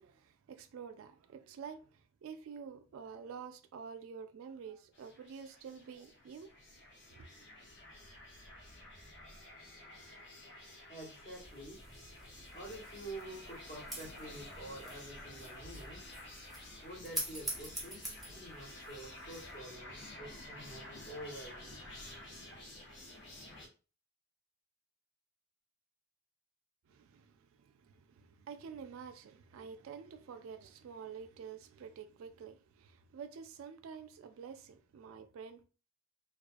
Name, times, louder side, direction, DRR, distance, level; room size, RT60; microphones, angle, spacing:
voice 1, 0.0-6.5 7.1-7.3 26.9-35.6, right 6 dB, 75° right, 0.3 m, -49 dB
sound 1, 4.9-23.7, left 1 dB, 55° left, 0.6 m, -51 dB
voice 2, 10.9-11.8 12.5-16.2 16.8-21.7, right 1 dB, 35° left, 1.0 m, -48 dB
sound 2, 11.4-19.6, right 1 dB, ahead, 0.6 m, -46 dB
2.3 x 2.3 x 2.4 m
head